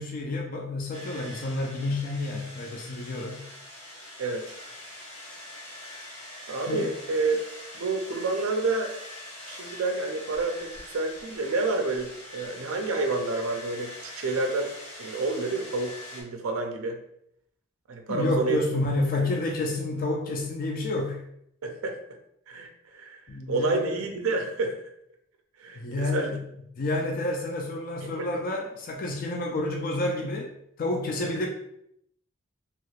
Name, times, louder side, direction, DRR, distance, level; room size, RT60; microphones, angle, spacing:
voice 1, 0.0-3.4 6.7-6.9 18.1-21.2 23.3-24.0 25.8-26.4 26.8-30.5 30.8-31.5, left 2 dB, 40° left, 1 dB, 0.4 m, -29 dB
sound 1, 0.9-16.2, left 1 dB, 65° left, 1.1 m, -44 dB
voice 2, 4.2-4.5 6.5-7.4 7.7-8.9 9.5-14.7 15.0-17.0 17.9-18.6 19.1-19.2 21.6-22.0 22.5-24.8 25.6-26.4 28.0-28.2 31.2-31.3, right 3 dB, 70° right, 4 dB, 0.4 m, -29 dB
3.2 x 2.9 x 2.4 m, 0.74 s
head